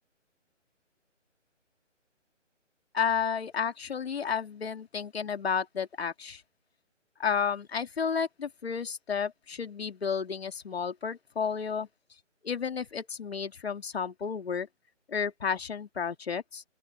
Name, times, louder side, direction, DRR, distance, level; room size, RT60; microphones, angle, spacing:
voice 1, 2.9-6.4 7.2-11.9 12.4-14.7 15.1-16.6, left 6 dB, 55° left, 2.3 m, -32 dB
open air
hypercardioid pair, 165°, 37 cm